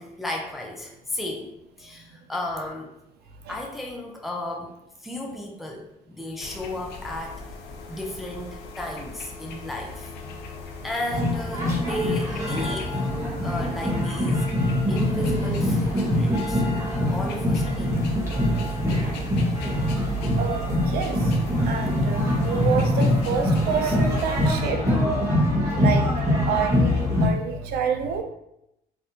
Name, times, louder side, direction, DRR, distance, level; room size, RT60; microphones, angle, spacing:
voice 1, 0.0-1.5 1.8-2.9 3.5-4.7 5.0-7.4 7.9-13.0 13.4-14.5 14.9-16.6 17.1-18.0 22.3-22.5 25.7-25.8, left 1 dB, ahead, 0 dB, 0.4 m, -34 dB
sound 1, 6.4-24.5, right 1 dB, 80° left, 0.5 m, -37 dB
sound 2, 11.1-27.3, left 1 dB, 20° right, 1.0 m, -24 dB
voice 2, 20.4-21.2 21.7-25.2 25.7-26.1 26.5-28.2, right 6 dB, 70° right, 5 dB, 0.5 m, -28 dB
3.4 x 2.4 x 2.7 m, 0.84 s
cardioid pair, 110°, 17 cm